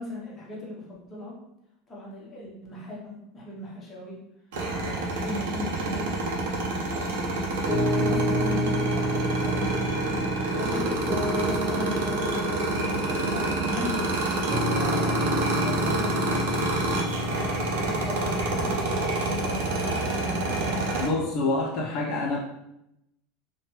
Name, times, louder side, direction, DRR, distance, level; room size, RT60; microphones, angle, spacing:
voice 1, 0.0-1.4 1.9-4.2 4.9-6.3 6.9-7.5 7.9-11.1 11.4-14.0 14.7-17.0 17.8-18.9 19.3-21.1, left 1 dB, 15° left, -5 dB, 0.7 m, -38 dB
sound 1, 4.5-21.1, right 2 dB, 75° right, 0.6 m, -28 dB
Piano, 7.7-21.0, equal, 35° right, 0.9 m, -30 dB
voice 2, 21.0-22.4, left 2 dB, 45° left, -2 dB, 0.4 m, -26 dB
3.1 x 2.2 x 2.9 m, 0.84 s
supercardioid pair, 175°, 0 cm